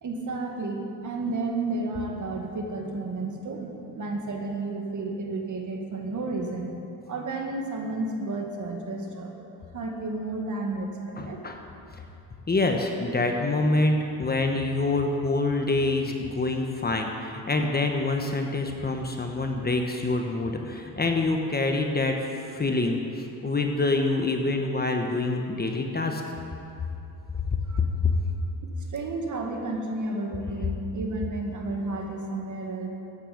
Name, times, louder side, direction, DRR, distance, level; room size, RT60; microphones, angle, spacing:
voice 1, 0.0-6.7 7.1-9.3 9.7-11.4 27.7-27.8 28.6-32.9, right 2 dB, 45° right, 1 dB, 2.0 m, -32 dB
voice 2, 11.2-11.6 12.5-26.2 27.5-28.1, left 2 dB, 25° left, 3 dB, 1.2 m, -26 dB
14.5 x 9.1 x 5.2 m, 2.7 s
cardioid pair, 95°, 41 cm